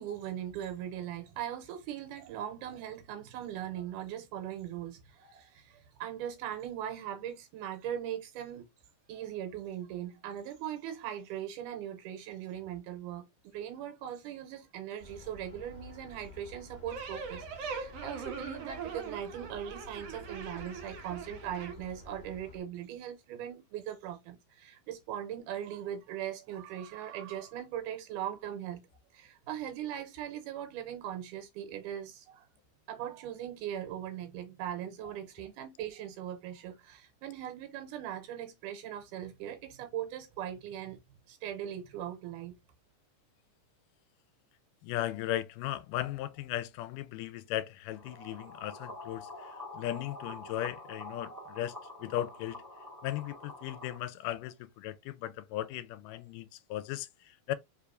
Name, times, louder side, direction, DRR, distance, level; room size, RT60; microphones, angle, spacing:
voice 1, 0.0-8.6 9.1-13.2 13.5-28.8 29.1-32.5 32.9-41.0 41.3-42.5, right 10 dB, 85° right, 2.2 m, -40 dB
sound 1, 15.0-22.6, left 1 dB, 20° left, 1.3 m, -51 dB
sound 2, 16.9-21.7, right 5 dB, 60° right, 2.0 m, -41 dB
voice 2, 44.8-52.6 53.0-57.5, left 13 dB, 85° left, 2.1 m, -37 dB
sound 3, 47.9-54.0, left 2 dB, 10° right, 0.8 m, -46 dB
4.6 x 3.4 x 2.5 m
omnidirectional pair, 3.7 m